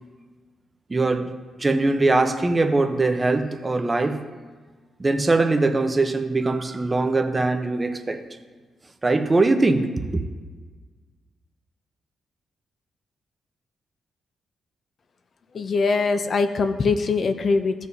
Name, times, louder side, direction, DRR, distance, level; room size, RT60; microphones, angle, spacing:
voice 1, 0.9-1.3 1.6-4.2 5.0-8.2 9.0-10.2, right 2 dB, 25° right, 6 dB, 0.9 m, -21 dB
voice 2, 15.5-17.9, left 4 dB, 50° left, 9 dB, 0.6 m, -22 dB
15.5 x 6.3 x 2.8 m, 1.4 s
cardioid pair, 90°, 0 cm